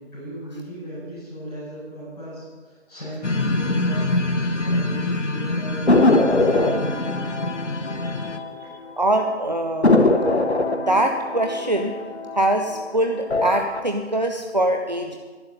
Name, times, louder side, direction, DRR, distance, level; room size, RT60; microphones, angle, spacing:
voice 1, 0.0-7.2 8.2-8.3 8.6-8.7, right 1 dB, 5° left, -14 dB, 5.1 m, -37 dB
sound 1, 3.2-8.4, left 2 dB, 80° left, 1.1 m, -25 dB
sound 2, 5.9-8.9 9.2-9.3 9.8-12.8 13.2-13.8, left 2 dB, 65° left, 1.4 m, -21 dB
voice 2, 8.0-10.1 10.7-11.9 12.3-15.2, right 1 dB, 40° right, 3 dB, 0.7 m, -23 dB
11.5 x 10.0 x 6.6 m, 1.4 s
figure-of-eight pair, 170°, 35 cm